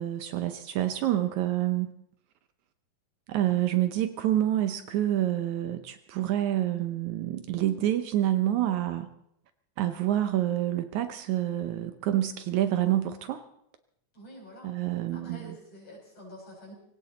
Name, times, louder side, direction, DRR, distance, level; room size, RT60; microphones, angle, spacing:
voice 1, 0.0-1.9 3.3-9.1 9.8-13.5 14.6-15.6, right 13 dB, 75° right, 9 dB, 2.1 m, -27 dB
voice 2, 14.1-14.7 15.1-16.7, equal, 50° left, -1 dB, 6.6 m, -47 dB
20.5 x 17.5 x 4.0 m, 0.75 s
omnidirectional pair, 3.7 m